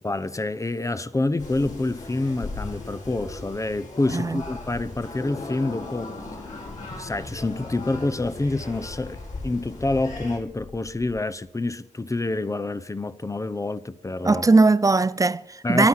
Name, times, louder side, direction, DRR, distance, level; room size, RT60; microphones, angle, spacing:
voice 1, 0.0-6.1 7.0-14.4 15.6-15.9, left 2 dB, 25° left, 0.7 m, -27 dB
sound 1, 1.4-10.4, left 2 dB, 65° left, 6.2 m, -38 dB
voice 2, 4.1-4.4 14.2-15.9, right 3 dB, 25° right, 0.5 m, -19 dB
sound 2, 5.2-11.2, left 2 dB, 50° left, 3.9 m, -41 dB
23.0 x 8.0 x 5.8 m
wide cardioid pair, 80°, 14 cm